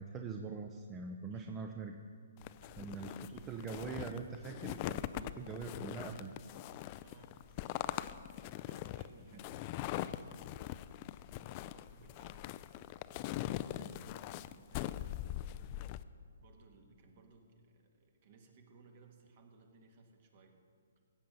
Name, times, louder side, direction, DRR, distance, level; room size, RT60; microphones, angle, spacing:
voice 1, 0.0-2.0 2.8-6.3 9.3-9.4, right 5 dB, 20° right, 5 dB, 0.6 m, -43 dB
voice 2, 1.3-1.7 2.6-3.6 7.0-7.8 8.2-10.4 11.4-12.5 13.2-15.8 16.4-20.6, right 4 dB, 45° right, 4 dB, 1.7 m, -62 dB
sound 1, 2.4-16.0, left 14 dB, 35° left, 0.3 m, -42 dB
15.5 x 7.6 x 5.4 m, 2.1 s
hypercardioid pair, 145°, 0 cm